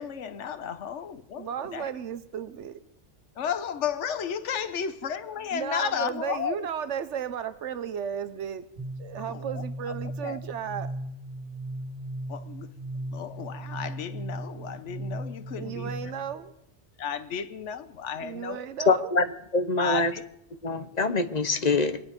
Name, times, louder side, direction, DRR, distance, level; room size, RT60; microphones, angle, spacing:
voice 1, 0.0-1.9 3.4-6.7 9.2-10.0 10.2-10.4 12.3-12.7 13.1-16.1 17.0-18.6 19.8-20.2, left 8 dB, 85° left, 1.2 m, -33 dB
voice 2, 1.4-2.8 5.5-8.6 9.0-11.0 15.5-16.5 18.2-19.1, right 8 dB, 90° right, 1.1 m, -34 dB
sound 1, 8.8-16.3, right 1 dB, 65° right, 3.0 m, -37 dB
voice 3, 18.9-19.3 19.5-20.1 20.6-22.0, left 3 dB, 40° left, 0.9 m, -24 dB
25.0 x 9.9 x 5.2 m
omnidirectional pair, 1.2 m